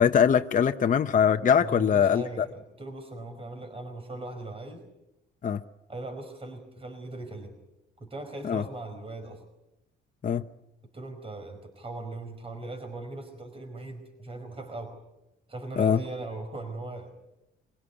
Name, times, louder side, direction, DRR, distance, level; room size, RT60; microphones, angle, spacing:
voice 1, 0.0-2.5 5.4-5.6 8.4-8.6 10.2-10.4 15.8-16.0, left 8 dB, 40° left, 7 dB, 0.8 m, -22 dB
voice 2, 1.6-4.8 5.9-7.5 8.0-9.4 10.9-15.0 15.5-17.1, right 2 dB, 30° right, 6 dB, 4.9 m, -39 dB
25.0 x 17.0 x 9.8 m, 0.89 s
cardioid pair, 90°, 20 cm